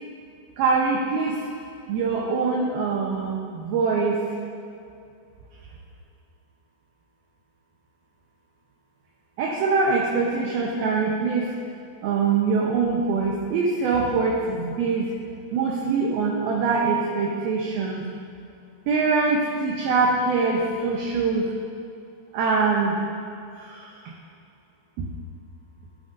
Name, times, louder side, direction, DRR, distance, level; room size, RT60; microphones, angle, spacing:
voice 1, 0.6-1.4 1.9-4.2 9.4-11.5 12.0-15.1 15.5-18.1 18.9-21.5 22.3-22.9, right 4 dB, 75° right, -2 dB, 2.5 m, -23 dB
16.5 x 9.0 x 2.6 m, 2.5 s
omnidirectional pair, 5.0 m